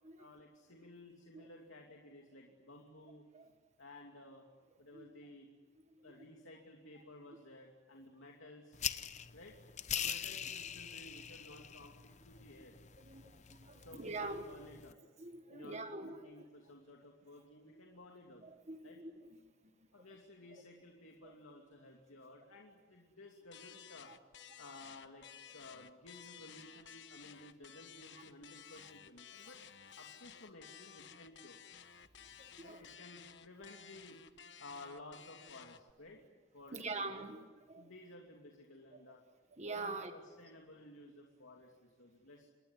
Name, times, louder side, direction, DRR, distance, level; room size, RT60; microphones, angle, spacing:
voice 1, 0.2-3.2 3.8-4.4 4.8-5.5 6.0-8.8 9.3-9.5 9.9-12.7 13.4-15.0 15.5-18.4 18.8-19.0 19.9-24.1 24.6-29.6 30.0-31.6 32.6-34.2 34.6-36.2 36.5-37.3 37.7-39.2 39.7-42.5, left 2 dB, 85° left, 0 dB, 2.7 m, -55 dB
sound 1, 8.7-14.9, left 9 dB, 35° left, 0.7 m, -43 dB
voice 2, 13.0-14.4 15.2-16.5 18.4-19.4 20.5-20.6 21.2-21.3 24.1-24.2 32.2-32.8 36.7-37.9 38.9-39.0 39.5-40.1, right 3 dB, 35° right, 7 dB, 1.5 m, -45 dB
sound 2, 23.5-35.9, left 8 dB, 60° left, 1.0 m, -55 dB
26.5 x 21.0 x 9.9 m, 1.4 s
head